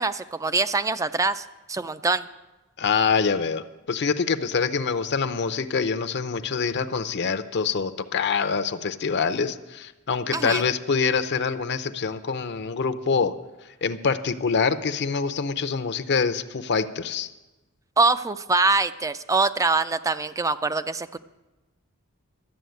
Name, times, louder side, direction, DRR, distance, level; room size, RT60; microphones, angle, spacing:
voice 1, 0.0-2.3 10.3-10.6 18.0-21.2, right 3 dB, 15° right, 13 dB, 0.4 m, -24 dB
voice 2, 2.8-13.3 13.8-17.3, left 5 dB, 55° left, 10 dB, 0.6 m, -25 dB
12.5 x 7.1 x 9.2 m, 1.1 s
head